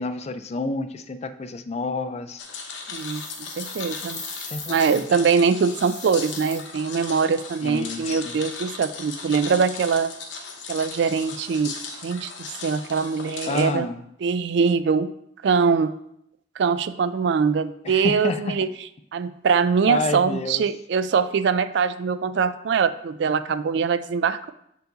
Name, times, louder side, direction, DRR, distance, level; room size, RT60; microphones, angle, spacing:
voice 1, 0.0-2.5 4.5-5.1 7.6-8.4 13.5-14.0 17.8-18.5 19.8-20.6, left 3 dB, 35° left, 10 dB, 0.4 m, -29 dB
sound 1, 2.4-13.6, left 5 dB, 70° left, 1.0 m, -37 dB
sound 2, 2.9-5.0 5.7-6.5, left 3 dB, 15° left, 1.9 m, -40 dB
voice 2, 2.9-3.3 3.6-4.2 4.7-10.1 10.7-11.8 12.0-12.3 12.6-13.9 14.2-15.1 15.4-15.9 16.6-18.7 19.1-24.5, right 5 dB, 60° right, 13 dB, 0.3 m, -22 dB
6.6 x 4.7 x 3.9 m, 0.74 s
head